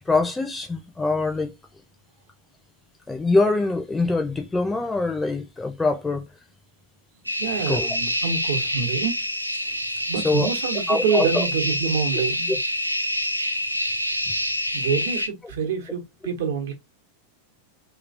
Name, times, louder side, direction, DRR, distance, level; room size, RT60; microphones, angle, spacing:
voice 1, 0.1-1.5 3.1-6.2 7.7-7.9 10.2-10.5 10.9-11.4, left 3 dB, 10° left, 0.7 m, -23 dB
voice 2, 7.2-9.1 10.1-12.6 14.7-16.7, right 6 dB, 60° right, 1.1 m, -27 dB
sound 1, 7.3-15.3, equal, 90° left, 0.5 m, -26 dB
3.2 x 3.1 x 2.5 m
figure-of-eight pair, 90°, 0 cm